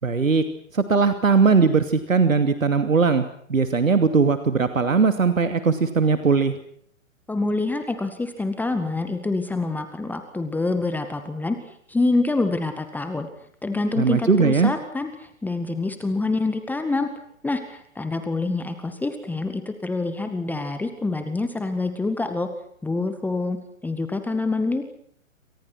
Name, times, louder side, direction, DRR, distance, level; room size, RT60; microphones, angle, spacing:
voice 1, 0.0-0.4 0.7-6.6 14.0-14.7, right 5 dB, 80° right, 9 dB, 2.7 m, -19 dB
voice 2, 7.3-13.3 13.6-17.1 17.4-22.5 22.8-23.6 23.8-24.8, left 3 dB, 5° left, 8 dB, 1.9 m, -26 dB
29.0 x 26.0 x 6.2 m, 0.66 s
figure-of-eight pair, 125°, 40 cm